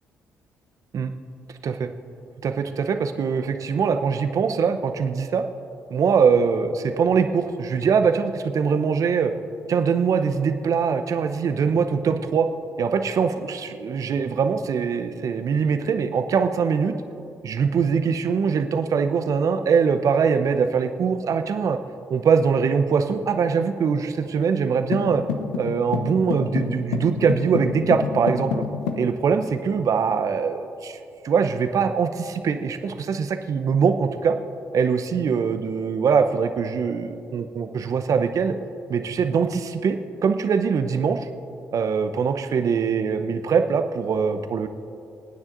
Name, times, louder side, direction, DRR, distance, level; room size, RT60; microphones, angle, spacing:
voice 1, 2.4-5.4 5.9-9.3 9.7-12.5 12.8-17.0 17.4-21.8 22.1-25.2 25.6-28.6 29.0-31.0 31.2-34.4 34.7-38.5 38.9-41.2 41.7-44.7, right 6 dB, 55° right, 8 dB, 0.8 m, -22 dB
sound 1, 24.9-29.1, left 6 dB, 80° left, 0.8 m, -29 dB
27.5 x 9.7 x 2.6 m, 2.6 s
hypercardioid pair, 45°, 7 cm